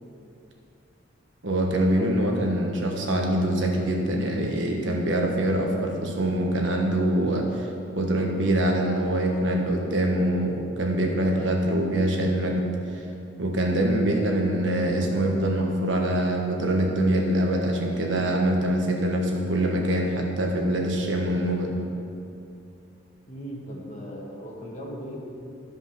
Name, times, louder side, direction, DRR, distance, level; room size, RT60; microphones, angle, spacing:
voice 1, 1.4-7.7 8.0-12.7 13.4-21.7, right 1 dB, 85° right, 1 dB, 1.4 m, -24 dB
voice 2, 23.3-25.2, equal, 40° left, -2 dB, 1.7 m, -38 dB
13.0 x 5.4 x 5.9 m, 2.6 s
head